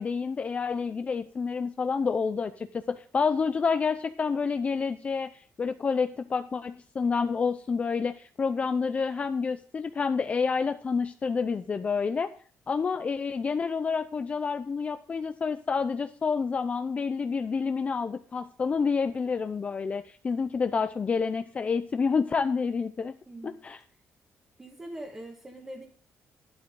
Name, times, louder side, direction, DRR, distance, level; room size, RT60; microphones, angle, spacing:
voice 1, 0.0-12.3 12.7-23.1 23.4-23.8, left 5 dB, 25° left, 9 dB, 0.5 m, -28 dB
voice 2, 23.3-23.6 24.6-25.8, right 1 dB, 15° right, -1 dB, 1.7 m, -42 dB
12.0 x 11.5 x 3.8 m, 0.43 s
cardioid pair, 160°, 5 cm